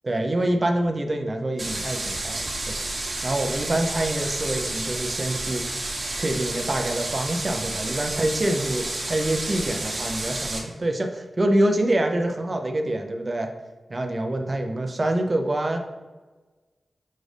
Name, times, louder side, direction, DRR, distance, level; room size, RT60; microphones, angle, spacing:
voice 1, 0.0-2.8 3.2-5.7 6.1-13.5 13.9-15.8, right 1 dB, 40° right, 3 dB, 0.6 m, -26 dB
sound 1, 1.6-10.6, right 2 dB, 55° right, 1.2 m, -30 dB
6.4 x 2.5 x 3.3 m, 1.3 s
cardioid pair, 55°, 0 cm